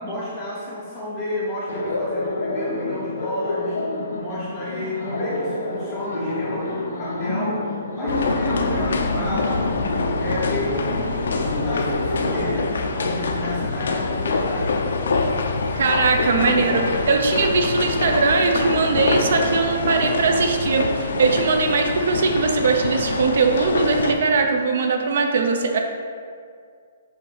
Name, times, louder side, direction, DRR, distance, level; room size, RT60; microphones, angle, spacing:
voice 1, 0.0-3.8 4.1-7.7 8.0-9.9 10.2-14.8, left 1 dB, 15° left, -7 dB, 0.6 m, -31 dB
Laughter, 1.7-12.6, left 2 dB, 90° left, 1.2 m, -28 dB
sound 1, 8.1-24.1, left 3 dB, 65° left, 0.6 m, -25 dB
voice 2, 15.7-25.8, right 4 dB, 50° right, 4 dB, 0.6 m, -20 dB
7.0 x 2.7 x 5.7 m, 2.1 s
hypercardioid pair, 180°, 0 cm